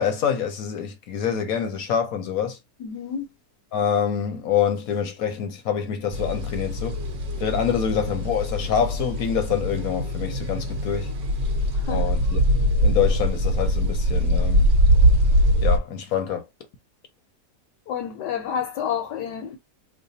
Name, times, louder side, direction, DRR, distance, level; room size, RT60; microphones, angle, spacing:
voice 1, 0.0-2.6 3.7-7.0 7.4-11.1 11.9-12.4 12.8-14.7 15.6-16.5, left 8 dB, 65° left, 1.0 m, -26 dB
voice 2, 2.8-3.3 11.7-12.0 17.9-19.6, left 8 dB, 80° left, 1.3 m, -29 dB
sound 1, 6.1-15.8, equal, 50° right, 1.1 m, -22 dB
3.2 x 2.2 x 3.9 m
omnidirectional pair, 1.8 m